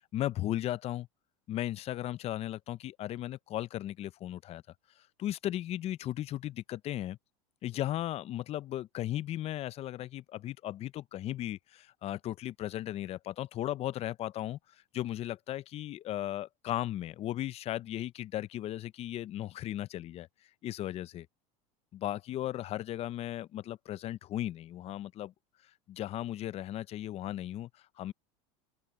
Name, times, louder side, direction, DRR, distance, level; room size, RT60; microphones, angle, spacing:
voice 1, 0.1-1.1 1.5-4.6 5.2-7.2 7.6-14.6 14.9-20.3 20.6-21.2 21.9-25.3 25.9-27.7 28.0-28.1, left 13 dB, 35° left, 0.5 m, -36 dB
open air
supercardioid pair, 115°, 18 cm